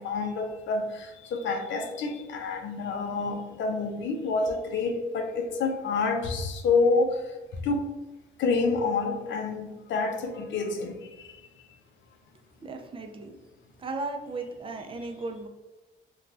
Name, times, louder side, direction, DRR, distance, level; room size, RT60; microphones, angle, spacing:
voice 1, 0.0-7.2 7.6-7.8 8.4-11.0, left 4 dB, 70° left, 4 dB, 0.5 m, -28 dB
voice 2, 12.6-13.4 13.8-15.5, right 3 dB, 25° right, 4 dB, 0.4 m, -36 dB
2.5 x 2.2 x 3.2 m, 1.1 s
cardioid pair, 90°, 20 cm